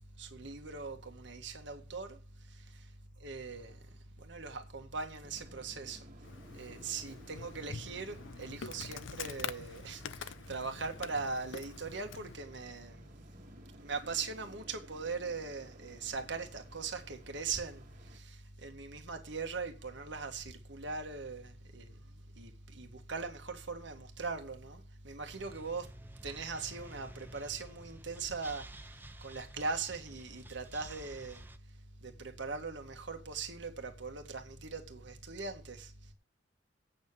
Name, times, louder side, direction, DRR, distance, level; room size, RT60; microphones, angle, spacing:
voice 1, 0.2-2.2 3.2-3.8 4.2-6.0 6.5-13.1 13.8-17.8 18.1-21.9 22.4-25.9 26.2-28.7 29.2-31.4 32.0-35.9, right 4 dB, 65° right, 1.9 m, -40 dB
sound 1, 5.2-18.2, equal, 45° right, 2.1 m, -57 dB
Insect, 6.2-12.4, left 6 dB, 80° left, 0.6 m, -45 dB
sound 2, 25.3-31.6, right 1 dB, 10° right, 0.7 m, -52 dB
8.6 x 7.0 x 8.6 m
head